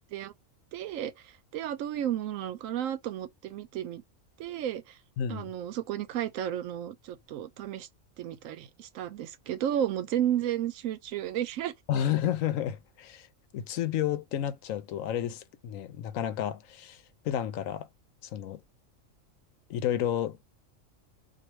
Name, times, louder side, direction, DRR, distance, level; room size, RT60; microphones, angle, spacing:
voice 1, 0.7-4.0 4.4-5.0 5.3-7.9 8.2-11.7, right 10 dB, 80° right, 1.0 m, -33 dB
voice 2, 5.2-5.5 11.9-13.3 13.5-17.0 17.2-17.9 18.3-18.6 19.7-20.4, left 10 dB, 80° left, 1.0 m, -31 dB
3.1 x 2.7 x 4.5 m
omnidirectional pair, 1.4 m